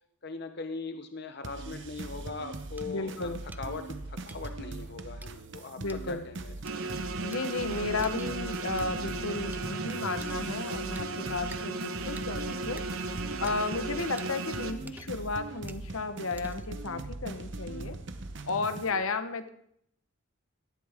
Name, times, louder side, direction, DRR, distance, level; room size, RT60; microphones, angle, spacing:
voice 1, 0.2-6.5 16.2-16.5 18.9-19.0, left 4 dB, 45° left, 7 dB, 0.8 m, -40 dB
sound 1, 1.4-18.9, right 2 dB, 55° right, 1.0 m, -41 dB
sound 2, 2.8-2.9 3.5-3.6 4.3-4.5 5.2-5.3 5.9-6.0 6.7-6.8 7.3-7.4 8.0-8.3 8.8-8.9 9.5-9.6 10.2-10.5 11.0-11.1 11.5-11.6 12.2-12.3 12.8-12.9 13.5-13.6 14.2-14.3 14.9-15.3 15.7-15.8 16.4-16.8, right 3 dB, 10° right, 0.4 m, -48 dB
voice 2, 2.9-3.4 5.8-6.2 7.2-12.8 13.4-18.0 18.5-19.5, left 3 dB, 70° left, 10 dB, 1.0 m, -33 dB
sound 3, 6.6-14.7, right 3 dB, 75° right, 1.2 m, -36 dB
18.0 x 12.5 x 3.6 m, 0.70 s
head